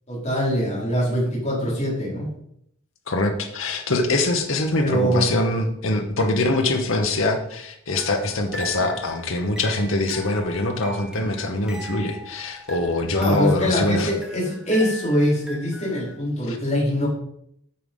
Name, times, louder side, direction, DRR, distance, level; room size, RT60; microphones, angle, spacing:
voice 1, 0.1-2.3 4.8-5.3 13.1-17.1, equal, 30° left, -6 dB, 4.6 m, -23 dB
voice 2, 3.1-14.1 16.5-16.6, left 2 dB, 80° left, 4 dB, 1.1 m, -23 dB
sound 1, 7.9-16.2, equal, 5° right, 1.2 m, -40 dB
9.1 x 6.4 x 5.4 m, 0.72 s
head